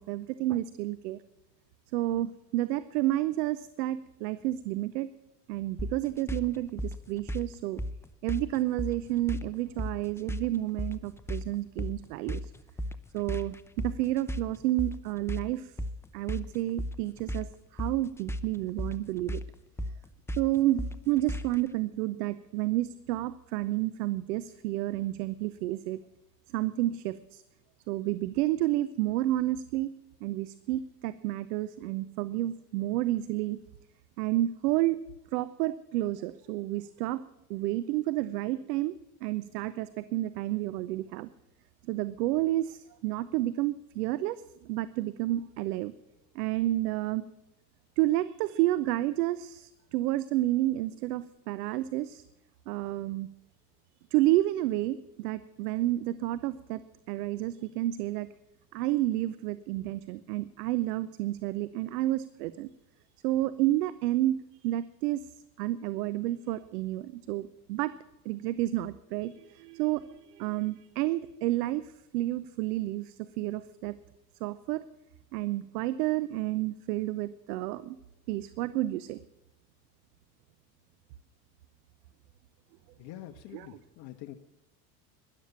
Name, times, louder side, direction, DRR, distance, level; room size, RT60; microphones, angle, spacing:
voice 1, 0.1-1.2 1.9-5.1 5.5-7.8 8.2-12.5 13.1-15.7 16.1-19.4 20.4-26.0 26.5-27.4 27.9-29.9 30.2-33.6 34.2-35.0 35.3-37.2 37.5-41.3 41.9-45.9 46.3-47.2 48.0-52.2 52.7-53.3 54.1-58.3 58.7-62.7 63.2-65.2 65.6-67.9 68.2-73.9 74.4-74.8 75.3-78.0 78.3-79.2 83.5-83.8, right 15 dB, 70° right, 15 dB, 0.8 m, -30 dB
sound 1, 5.8-21.7, equal, 5° left, 0.6 m, -36 dB
voice 2, 83.0-84.4, left 14 dB, 50° left, 6 dB, 1.1 m, -45 dB
13.0 x 11.0 x 7.1 m, 0.91 s
hypercardioid pair, 90°, 50 cm